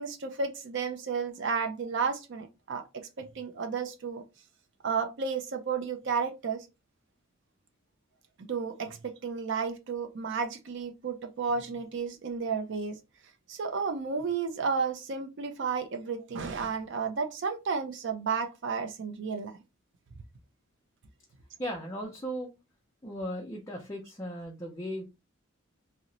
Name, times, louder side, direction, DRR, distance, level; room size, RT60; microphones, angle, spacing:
voice 1, 0.0-2.8 3.2-4.2 4.8-6.6 8.5-13.0 13.5-19.5, right 5 dB, 60° right, 0.4 m, -32 dB
voice 2, 21.6-22.5 23.0-25.0, equal, 15° left, 0.5 m, -37 dB
2.9 x 2.0 x 3.7 m
head